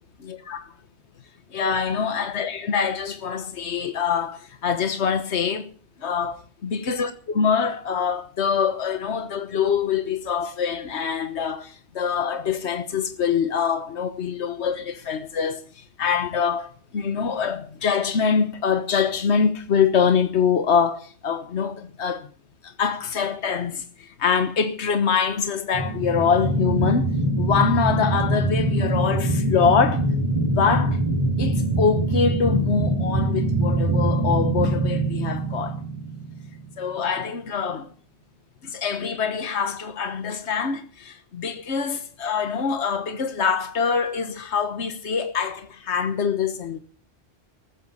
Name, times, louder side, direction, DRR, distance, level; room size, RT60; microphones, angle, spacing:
voice 1, 0.2-0.6 1.5-5.7 6.0-22.3 22.6-27.1 27.4-30.0 30.6-31.0 31.4-35.8 36.8-37.9 38.6-46.8, left 6 dB, 80° left, 1.5 m, -24 dB
sound 1, 25.7-36.7, right 1 dB, 25° right, 7.2 m, -23 dB
15.0 x 13.5 x 5.5 m
omnidirectional pair, 1.1 m